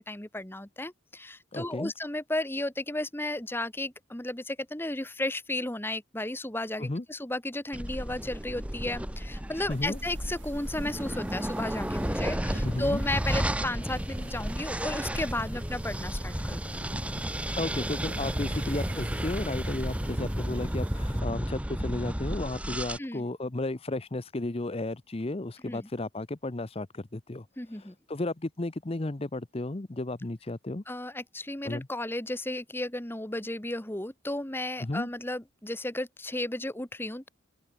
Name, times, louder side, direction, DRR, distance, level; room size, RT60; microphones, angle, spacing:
voice 1, 0.0-16.8 23.0-23.2 25.6-25.9 27.6-27.9 30.9-37.3, left 1 dB, 10° left, 1.4 m, -34 dB
voice 2, 1.5-1.9 6.8-7.0 9.7-10.0 12.6-13.0 17.5-27.5 27.7-30.8 31.6-31.9 34.8-35.1, left 2 dB, 30° left, 0.8 m, -33 dB
sound 1, 7.7-23.0, equal, 5° right, 1.1 m, -32 dB
sound 2, 9.7-21.2, right 3 dB, 75° right, 6.4 m, -50 dB
open air
head